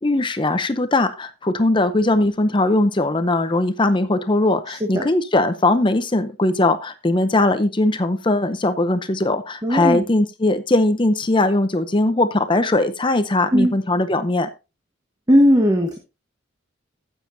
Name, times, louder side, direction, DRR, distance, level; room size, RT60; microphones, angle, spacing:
voice 1, 0.0-14.5, left 2 dB, 25° left, 10 dB, 0.6 m, -20 dB
voice 2, 9.6-10.0 13.5-13.7 15.3-16.0, equal, 20° right, 3 dB, 1.2 m, -16 dB
15.0 x 7.3 x 2.7 m, 0.28 s
head